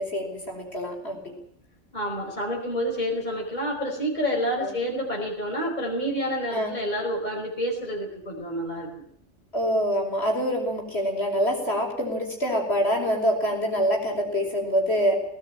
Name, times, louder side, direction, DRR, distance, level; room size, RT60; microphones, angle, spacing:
voice 1, 0.0-1.3 4.6-4.7 6.5-6.7 9.5-15.1, equal, 60° left, 0 dB, 5.4 m, -25 dB
voice 2, 1.9-8.9, equal, 35° left, -1 dB, 5.0 m, -28 dB
19.5 x 18.0 x 9.0 m, 0.69 s
omnidirectional pair, 1.2 m